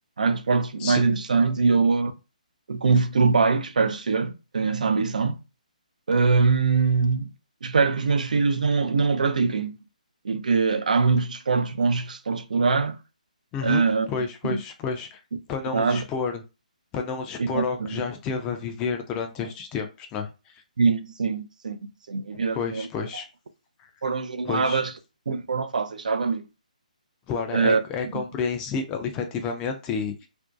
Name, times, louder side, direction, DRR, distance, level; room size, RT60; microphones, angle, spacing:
voice 1, 0.2-2.1 2.7-5.4 6.1-7.3 7.6-9.8 10.2-13.0 13.6-14.1 14.4-14.6 15.7-16.0 17.4-18.0 20.8-21.8 22.1-22.9 24.0-24.9 25.3-26.4 27.5-27.8, right 4 dB, 70° right, 0.4 m, -23 dB
voice 2, 13.5-15.2 15.5-16.4 16.9-20.3 22.3-23.3 23.8-23.9 24.5-24.8 27.3-30.3, left 5 dB, 20° left, 0.4 m, -30 dB
2.6 x 2.1 x 2.3 m
figure-of-eight pair, 140°, 4 cm